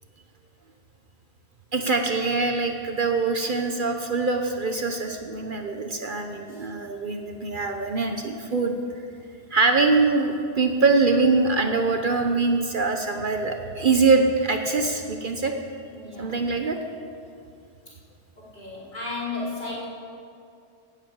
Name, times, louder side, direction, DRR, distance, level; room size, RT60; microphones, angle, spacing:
voice 1, 1.7-8.7 9.5-15.5 16.2-16.8, right 3 dB, 50° right, 5 dB, 1.0 m, -23 dB
voice 2, 6.2-6.7 15.9-16.5 18.4-19.9, left 3 dB, 45° left, -8 dB, 4.8 m, -35 dB
15.0 x 8.5 x 8.9 m, 2.4 s
omnidirectional pair, 1.1 m